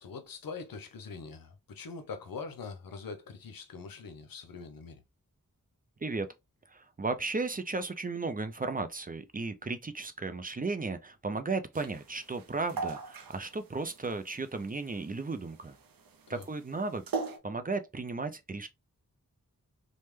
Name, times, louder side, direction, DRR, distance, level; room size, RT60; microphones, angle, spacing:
voice 1, 0.0-5.0 16.3-16.5, left 4 dB, 90° left, 0.6 m, -43 dB
voice 2, 6.7-15.8 16.3-17.0 17.4-18.7, right 3 dB, 25° right, 0.4 m, -35 dB
sound 1, 11.7-17.4, right 4 dB, 90° right, 0.6 m, -40 dB
3.3 x 2.1 x 3.1 m
wide cardioid pair, 55°, 33 cm